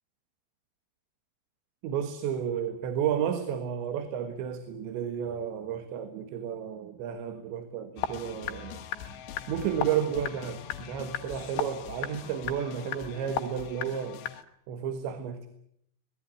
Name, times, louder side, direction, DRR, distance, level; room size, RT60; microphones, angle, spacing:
voice 1, 1.8-8.8 9.5-14.2 14.7-15.5, right 8 dB, 80° right, 9 dB, 3.8 m, -32 dB
sound 1, 8.0-14.4, left 10 dB, 75° left, 3.6 m, -37 dB
25.0 x 19.5 x 9.7 m, 0.72 s
omnidirectional pair, 5.1 m